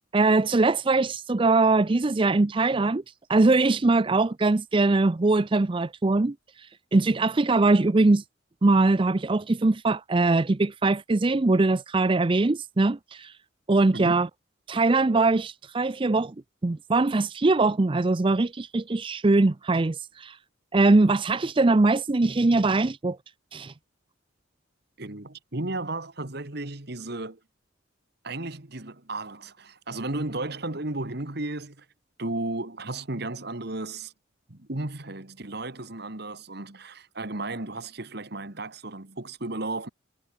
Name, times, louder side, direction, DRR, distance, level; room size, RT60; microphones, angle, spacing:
voice 1, 0.1-8.2 8.6-13.4 13.7-14.3 14.7-16.3 16.6-20.4 20.7-23.2 23.5-23.7, right 3 dB, 25° right, 0.5 m, -22 dB
voice 2, 13.9-14.3 25.0-27.4 28.2-31.9 32.2-34.1 34.5-39.9, right 2 dB, 55° right, 2.0 m, -34 dB
head